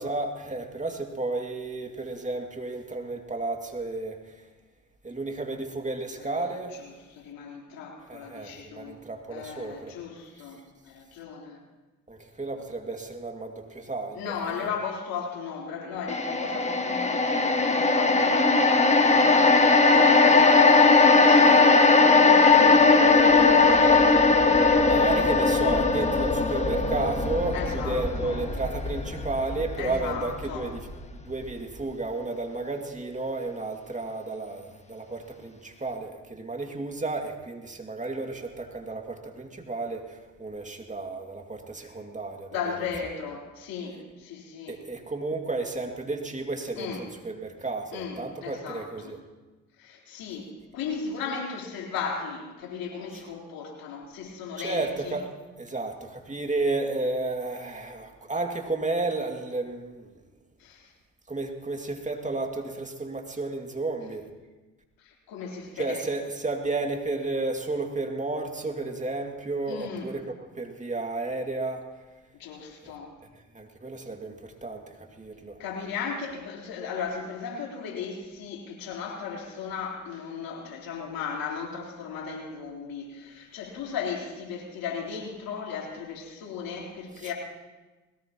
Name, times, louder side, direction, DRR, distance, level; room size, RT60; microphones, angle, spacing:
voice 1, 0.0-4.3 5.0-6.8 8.0-10.0 12.1-14.7 21.3-21.7 24.9-42.9 44.7-49.2 53.1-53.2 54.6-55.3 55.6-60.1 61.3-64.3 65.8-70.2 70.6-71.8 73.5-75.6 87.2-87.3, right 3 dB, 20° right, 3 dB, 2.4 m, -32 dB
voice 2, 7.2-8.9 9.3-10.6 10.9-11.6 14.1-25.1 27.5-28.4 29.8-30.7 42.5-44.8 46.8-47.0 47.9-49.1 49.8-55.2 60.6-60.9 65.0-66.0 69.7-70.1 72.4-73.1 75.6-87.3, left 6 dB, 70° left, -2 dB, 3.9 m, -36 dB
sound 1, 16.1-30.4 30.8-30.9, left 3 dB, 20° left, 1.7 m, -19 dB
21.0 x 18.0 x 3.0 m, 1.2 s
hypercardioid pair, 55°, 35 cm